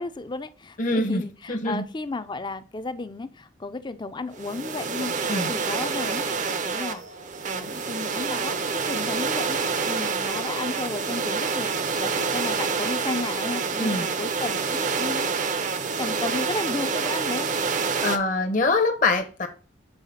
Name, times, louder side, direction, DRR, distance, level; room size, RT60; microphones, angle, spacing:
voice 1, 0.0-7.0 7.4-15.6 16.0-17.5, left 3 dB, 25° left, 12 dB, 0.4 m, -34 dB
voice 2, 0.8-1.2 1.5-1.8 5.3-5.5 13.8-14.1 18.0-19.5, left 3 dB, 45° left, 5 dB, 0.8 m, -24 dB
sound 1, 4.4-18.2, right 5 dB, 40° right, 0.6 m, -27 dB
5.5 x 4.0 x 5.7 m, 0.37 s
head